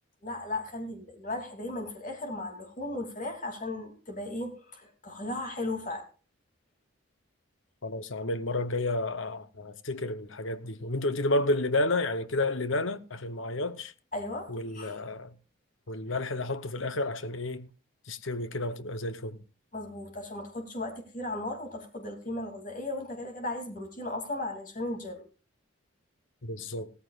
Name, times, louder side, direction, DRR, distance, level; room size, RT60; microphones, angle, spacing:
voice 1, 0.2-6.1 14.1-15.0 16.1-16.2 19.7-25.2, left 2 dB, 40° left, 2.7 m, -36 dB
voice 2, 7.8-13.9 14.5-15.3 15.9-17.7 18.1-19.4 26.4-26.9, left 2 dB, 65° left, 0.9 m, -31 dB
17.0 x 14.0 x 2.4 m
head